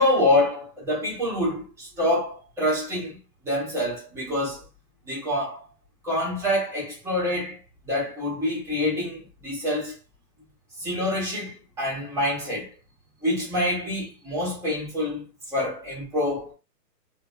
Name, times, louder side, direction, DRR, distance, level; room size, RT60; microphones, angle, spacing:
voice 1, 0.0-3.2 3.4-4.6 5.1-5.7 6.0-7.6 7.8-9.9 10.8-12.7 13.2-16.5, left 1 dB, 5° right, 1.3 m, -26 dB
3.3 x 2.7 x 2.4 m
hypercardioid pair, 160°, 50 cm